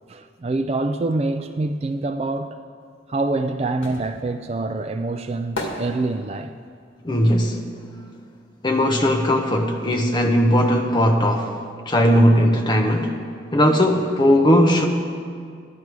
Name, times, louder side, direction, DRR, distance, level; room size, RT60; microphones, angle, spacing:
voice 1, 0.1-2.6 3.1-6.5, right 2 dB, 30° right, 8 dB, 0.3 m, -25 dB
sound 1, 2.9-8.8 9.1-10.7 10.9-11.0, left 1 dB, 80° left, 1.9 m, -36 dB
voice 2, 7.0-7.6 8.6-11.6 11.9-13.1 13.5-14.9, equal, 25° left, 3 dB, 0.9 m, -18 dB
13.5 x 10.5 x 4.7 m, 2.2 s
head